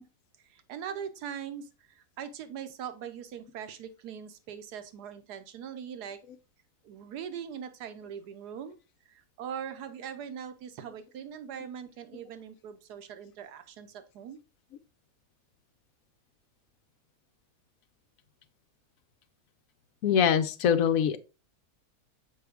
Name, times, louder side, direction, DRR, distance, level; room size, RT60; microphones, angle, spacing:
voice 1, 0.5-6.2 6.8-8.8 9.1-14.4, right 8 dB, 85° right, 1.3 m, -41 dB
voice 2, 20.0-21.2, left 8 dB, 65° left, 1.0 m, -23 dB
6.7 x 4.7 x 3.5 m
omnidirectional pair, 1.7 m